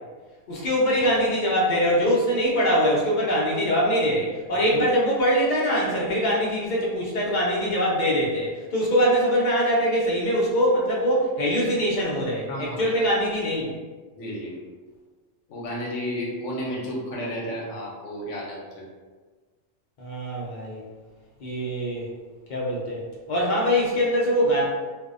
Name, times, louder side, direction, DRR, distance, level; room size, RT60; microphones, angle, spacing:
voice 1, 0.5-13.8 20.0-20.8 21.4-22.1 22.5-23.0 23.3-24.6, equal, 55° left, -5 dB, 0.5 m, -23 dB
voice 2, 4.5-4.8 12.5-12.9 14.2-14.6 15.5-18.8, equal, 70° left, -3 dB, 1.0 m, -32 dB
2.6 x 2.0 x 2.4 m, 1.4 s
omnidirectional pair, 1.3 m